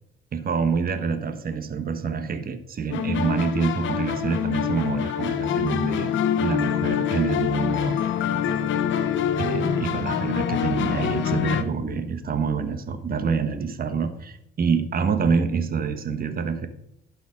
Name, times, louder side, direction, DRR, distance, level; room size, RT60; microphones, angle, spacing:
voice 1, 0.3-8.0 9.4-16.7, right 5 dB, 50° right, 9 dB, 1.2 m, -26 dB
sound 1, 2.9-11.6, left 8 dB, 75° left, 0.9 m, -25 dB
11.5 x 5.1 x 5.0 m, 0.77 s
cardioid pair, 90°, 20 cm